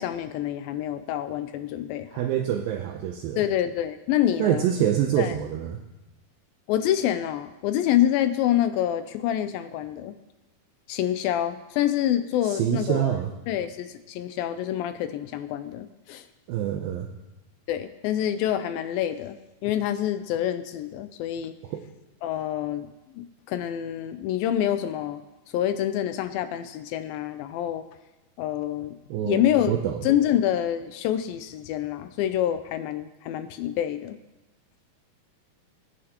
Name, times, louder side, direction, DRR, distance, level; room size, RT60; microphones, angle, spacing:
voice 1, 0.0-2.1 3.4-4.7 5.2-5.4 6.7-10.1 10.9-13.2 13.5-16.3 17.7-19.4 19.6-21.5 22.2-22.9 23.2-25.2 25.5-27.8 28.4-29.0 29.3-29.7 30.0-34.2, left 11 dB, 80° left, 11 dB, 2.1 m, -27 dB
voice 2, 2.1-3.4 4.4-5.8 12.4-13.3 16.5-17.1 21.7-21.8 29.1-30.0, right 10 dB, 80° right, 5 dB, 2.2 m, -26 dB
22.0 x 10.0 x 2.9 m, 1.0 s
omnidirectional pair, 4.5 m